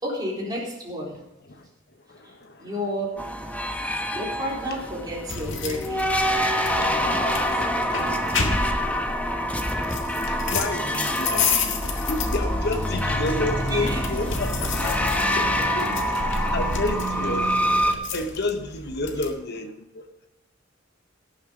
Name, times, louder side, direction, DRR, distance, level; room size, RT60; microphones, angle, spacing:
voice 1, 0.0-1.2 2.2-2.3 2.6-3.1 4.1-6.0 6.6-7.4 7.7-7.8 13.7-14.1 14.8-15.2, equal, 20° right, -4 dB, 4.0 m, -32 dB
voice 2, 2.1-2.7 4.0-4.1 6.8-6.9 10.3-14.9 15.3-15.4 15.7-15.9 16.5-17.5 17.7-20.0, left 2 dB, 60° left, 5 dB, 1.2 m, -30 dB
sound 1, 3.2-17.9, equal, 10° left, 1.1 m, -26 dB
sound 2, 5.3-19.3, left 4 dB, 75° left, 1.8 m, -31 dB
sound 3, 10.5-17.8, right 1 dB, 40° left, 2.6 m, -31 dB
17.5 x 7.1 x 5.1 m, 0.95 s
head